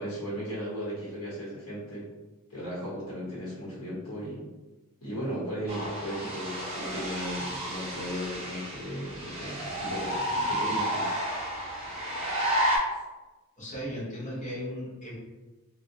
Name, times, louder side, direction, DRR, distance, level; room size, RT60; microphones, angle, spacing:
voice 1, 0.0-2.1 2.5-4.4 5.0-11.1, equal, 75° left, -7 dB, 1.1 m, -36 dB
sound 1, 5.7-12.8, equal, 25° right, 0.5 m, -31 dB
voice 2, 13.6-15.1, equal, 35° left, -6 dB, 0.7 m, -36 dB
2.1 x 2.1 x 2.7 m, 1.1 s
head